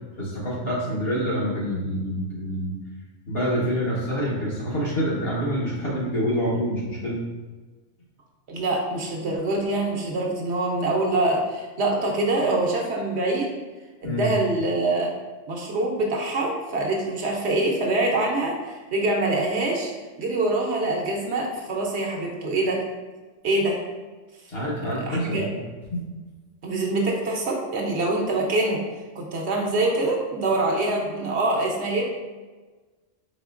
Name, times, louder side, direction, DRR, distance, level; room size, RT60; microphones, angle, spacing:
voice 1, 0.2-2.7 3.3-7.2 14.0-14.3 24.5-25.6 25.9-26.0, equal, 55° left, -5 dB, 1.3 m, -26 dB
voice 2, 8.5-13.5 14.0-15.1 15.5-19.9 20.2-22.8 23.4-23.8 25.0-25.5 26.6-28.8 29.1-32.1, right 2 dB, 65° right, -1 dB, 0.9 m, -25 dB
4.2 x 3.7 x 2.5 m, 1.3 s
omnidirectional pair, 1.3 m